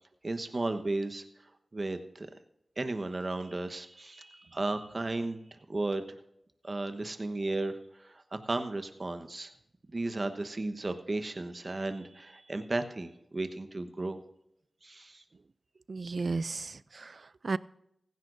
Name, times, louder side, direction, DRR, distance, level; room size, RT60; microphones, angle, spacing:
voice 1, 0.2-1.2 1.7-2.3 2.8-6.2 6.6-9.5 9.9-14.2 14.8-15.2, right 2 dB, 45° right, 8 dB, 1.2 m, -34 dB
voice 2, 15.9-17.6, right 3 dB, 65° right, 18 dB, 0.4 m, -34 dB
16.0 x 15.0 x 2.7 m, 0.79 s
cardioid pair, 50°, 0 cm